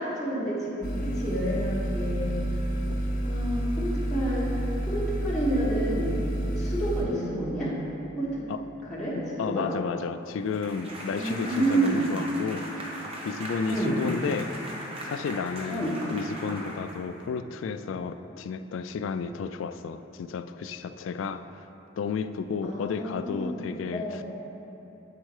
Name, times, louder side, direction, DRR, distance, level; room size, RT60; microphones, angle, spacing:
voice 1, 0.0-2.6 3.2-7.7 8.2-8.4 8.9-9.6 11.2-12.0 13.7-13.9 15.7-15.9 22.6-23.5 23.9-24.2, right 1 dB, 5° left, -11 dB, 1.2 m, -29 dB
sound 1, 0.8-7.0, right 1 dB, 45° left, 0.8 m, -29 dB
voice 2, 9.1-12.8 13.2-14.5 15.0-21.7 22.0-24.2, left 5 dB, 70° left, 10 dB, 0.3 m, -32 dB
sound 2, 10.5-17.3, equal, 30° right, 0.9 m, -39 dB
7.6 x 4.4 x 4.7 m, 3.0 s
head